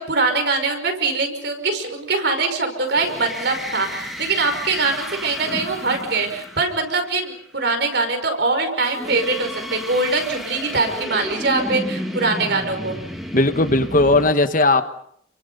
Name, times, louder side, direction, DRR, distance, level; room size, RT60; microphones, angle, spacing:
voice 1, 0.0-12.9, right 3 dB, 55° right, 5 dB, 5.5 m, -22 dB
sound 1, 2.9-7.3 8.8-14.3, equal, ahead, 2.6 m, -32 dB
voice 2, 13.3-14.9, left 2 dB, 40° left, 9 dB, 1.3 m, -17 dB
30.0 x 24.0 x 5.5 m, 0.68 s
head